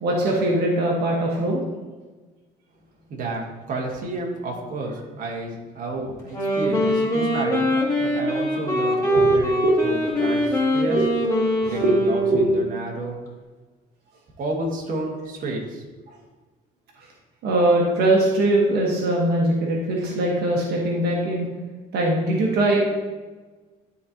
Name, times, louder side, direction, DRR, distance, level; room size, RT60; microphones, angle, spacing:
voice 1, 0.0-1.6 9.1-9.8 10.1-10.4 10.9-11.1 11.6-12.4 17.0-17.1 17.4-21.5 21.9-22.8, right 1 dB, 75° right, -2 dB, 1.4 m, -21 dB
voice 2, 3.1-7.7 8.0-10.4 10.7-11.0 11.6-13.3 14.4-15.9, right 2 dB, 55° right, 0 dB, 1.6 m, -31 dB
Wind instrument woodwind instrument, 6.2-12.7, equal, 20° left, 2.2 m, -22 dB
11.5 x 4.2 x 2.9 m, 1.3 s
cardioid pair, 110°, 17 cm